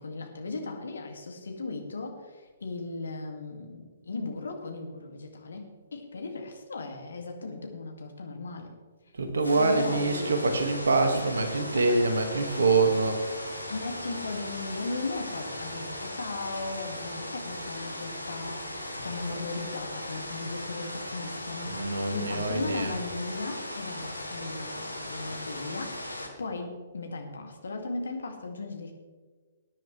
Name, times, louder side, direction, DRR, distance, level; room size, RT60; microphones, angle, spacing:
voice 1, 0.0-8.7 9.6-10.3 11.1-11.3 11.7-12.0 13.7-28.9, left 3 dB, 65° left, 3 dB, 2.2 m, -37 dB
voice 2, 9.2-13.2 21.7-23.0, right 3 dB, 65° right, 6 dB, 1.8 m, -25 dB
sound 1, 9.4-26.3, left 1 dB, 90° left, 1.8 m, -38 dB
19.5 x 10.0 x 3.3 m, 1.4 s
figure-of-eight pair, 120°, 0 cm